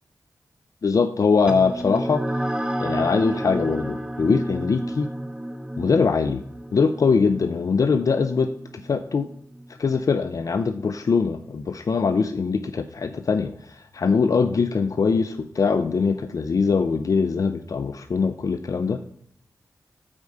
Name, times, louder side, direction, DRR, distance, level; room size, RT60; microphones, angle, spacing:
voice 1, 0.8-2.2 2.8-5.1 5.8-6.4 6.7-9.3 9.8-19.0, left 5 dB, 60° left, 9 dB, 0.5 m, -22 dB
sound 1, 1.5-10.3, right 1 dB, 15° right, 1.0 m, -31 dB
8.6 x 4.8 x 5.3 m, 0.66 s
cardioid pair, 65°, 6 cm